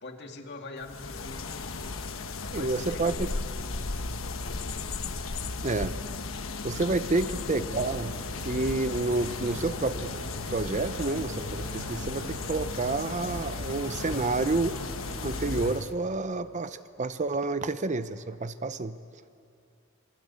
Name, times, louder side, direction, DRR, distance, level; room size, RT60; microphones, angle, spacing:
voice 1, 0.0-2.0 2.4-4.8 7.1-7.3, left 2 dB, 55° left, 3 dB, 2.4 m, -45 dB
sound 1, 0.8-15.9, left 3 dB, 90° left, 1.2 m, -35 dB
sound 2, 1.3-2.2 3.5-4.2 5.0-5.1 5.3-5.5 5.9-6.2, left 3 dB, 25° left, 3.1 m, -53 dB
voice 2, 2.5-3.1 5.6-6.0 6.6-8.1 8.4-10.1 10.5-14.8 15.2-19.0, right 3 dB, 35° right, 12 dB, 0.7 m, -29 dB
sound 3, 7.9-15.7, right 2 dB, 75° right, 1.6 m, -45 dB
27.5 x 22.5 x 8.4 m, 2.5 s
head